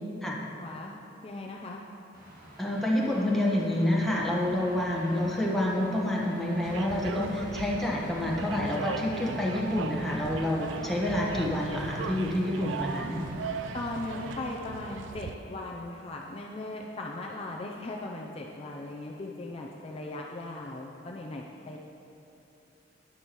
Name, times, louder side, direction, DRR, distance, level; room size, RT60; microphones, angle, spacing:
voice 1, 0.6-1.0 1.2-1.8 13.7-21.8, left 2 dB, 30° left, -1 dB, 0.5 m, -38 dB
sound 1, 2.1-14.4, right 1 dB, 50° right, 1.8 m, -47 dB
voice 2, 2.6-13.3, left 1 dB, ahead, -4 dB, 1.3 m, -28 dB
sound 2, 6.6-15.3, right 5 dB, 80° right, 0.4 m, -38 dB
12.0 x 9.7 x 3.1 m, 2.9 s
head